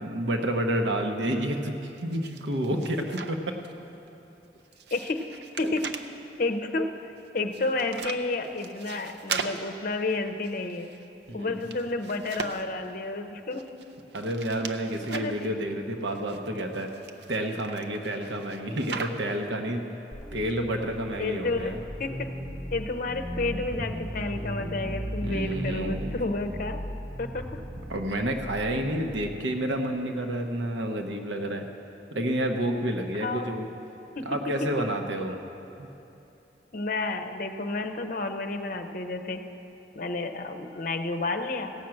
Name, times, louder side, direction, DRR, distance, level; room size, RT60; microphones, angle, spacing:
voice 1, 0.0-1.7 2.0-3.6 11.3-11.6 14.1-16.9 17.3-19.8 20.3-21.8 25.2-26.2 27.9-31.6 32.1-33.6 34.2-35.4 35.8-35.9, right 1 dB, 85° right, 4 dB, 1.0 m, -29 dB
sound 1, 1.6-3.7 4.1-6.1 7.2-11.1 11.4-12.9 13.5-15.5 16.0-19.5, right 5 dB, 65° right, 0.6 m, -40 dB
voice 2, 4.9-5.3 5.6-5.9 6.4-6.9 7.3-10.9 11.3-13.7 15.1-15.6 21.2-22.3 22.7-26.8 27.2-27.6 33.2-33.5 34.2-34.3 34.6-34.7 36.7-39.4 40.0-41.7, left 2 dB, 50° left, 5 dB, 0.7 m, -31 dB
sound 2, 20.1-29.2, equal, 5° right, 2.0 m, -37 dB
16.5 x 5.9 x 7.6 m, 2.9 s
head